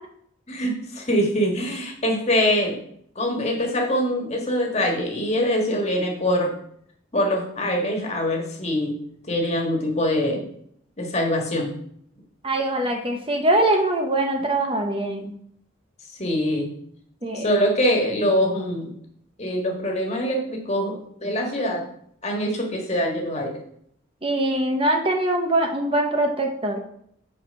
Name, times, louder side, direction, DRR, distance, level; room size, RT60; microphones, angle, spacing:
voice 1, 0.5-2.8 3.1-6.5 7.1-8.9 9.3-10.4 11.0-11.7 16.2-16.7 17.3-18.9 19.4-21.8 22.2-23.5, equal, 35° left, 1 dB, 1.6 m, -23 dB
voice 2, 12.4-15.3 17.2-17.5 24.2-26.8, right 1 dB, 25° right, 3 dB, 0.8 m, -23 dB
7.7 x 4.6 x 5.4 m, 0.69 s
head